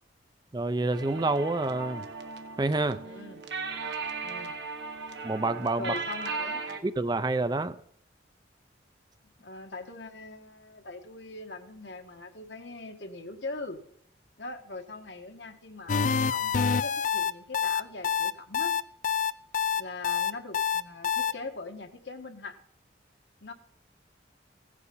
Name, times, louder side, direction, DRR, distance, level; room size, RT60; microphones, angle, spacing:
voice 1, 0.5-2.0 2.6-3.0 5.2-5.9 6.8-7.8, right 2 dB, 20° right, 13 dB, 0.4 m, -28 dB
sound 1, 0.9-6.8, right 4 dB, 75° right, 1.4 m, -37 dB
voice 2, 3.0-3.4 4.2-4.6 5.8-6.6 9.4-13.8 14.4-18.7 19.7-22.6 23.4-23.5, left 3 dB, 75° left, 6 dB, 1.4 m, -41 dB
sound 2, 15.9-21.3, left 7 dB, 45° left, 0.4 m, -26 dB
16.0 x 8.2 x 5.6 m, 0.66 s
head